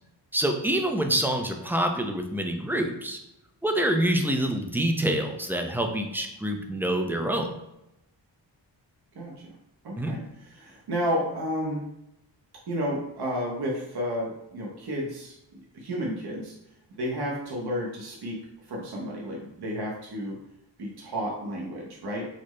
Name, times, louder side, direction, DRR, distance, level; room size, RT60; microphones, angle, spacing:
voice 1, 0.3-3.2 3.6-7.5 10.0-10.2, right 1 dB, 5° right, 3 dB, 0.3 m, -26 dB
voice 2, 9.1-9.5 9.8-11.9 12.7-15.4 15.7-16.5 17.0-18.4 18.7-20.4 20.8-22.3, equal, 60° right, -2 dB, 0.9 m, -31 dB
4.2 x 2.0 x 3.1 m, 0.86 s
cardioid pair, 75°, 45 cm